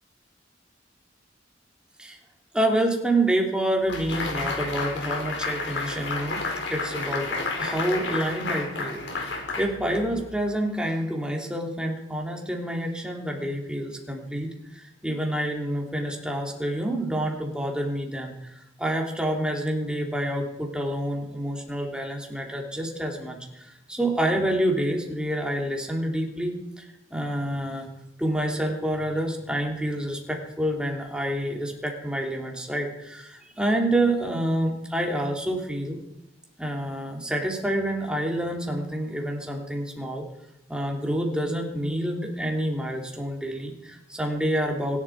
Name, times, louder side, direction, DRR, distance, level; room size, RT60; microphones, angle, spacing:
voice 1, 2.5-27.9 28.2-36.0 36.6-40.2 40.7-45.0, right 1 dB, 5° right, 0 dB, 3.0 m, -28 dB
sound 1, 3.9-10.4, left 3 dB, 90° left, 4.3 m, -31 dB
25.5 x 11.0 x 4.8 m, 0.91 s
head